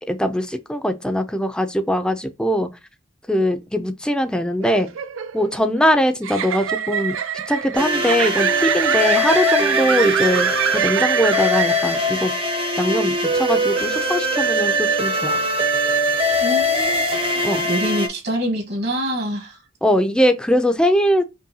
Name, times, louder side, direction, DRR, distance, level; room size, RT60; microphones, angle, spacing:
voice 1, 0.1-2.7 3.3-4.9 5.3-7.2 7.5-12.3 12.8-15.4 17.4-17.6 19.8-21.2, equal, 5° left, 0.4 m, -21 dB
sound 1, 4.6-12.2, right 9 dB, 90° right, 0.4 m, -26 dB
sound 2, 7.7-18.1, equal, 30° right, 0.7 m, -21 dB
voice 2, 16.4-17.0 17.3-19.6, equal, 55° right, 1.3 m, -26 dB
5.3 x 2.2 x 2.7 m
head